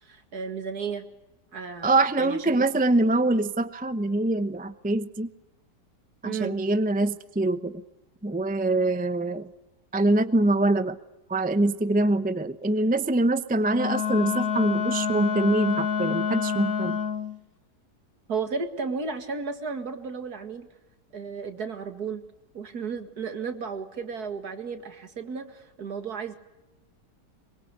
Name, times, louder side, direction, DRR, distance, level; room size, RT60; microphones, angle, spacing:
voice 1, 0.0-1.0 1.5-2.7 6.2-6.6 18.3-20.7 21.1-22.2 22.5-26.3, right 5 dB, 65° right, 8 dB, 2.5 m, -33 dB
voice 2, 1.8-5.3 6.2-7.8 8.2-9.5 9.9-11.0 11.3-17.0, right 2 dB, 10° right, 11 dB, 0.5 m, -24 dB
Wind instrument woodwind instrument, 13.7-17.4, left 7 dB, 60° left, 1.7 m, -27 dB
24.0 x 23.5 x 8.2 m, 0.98 s
omnidirectional pair, 1.8 m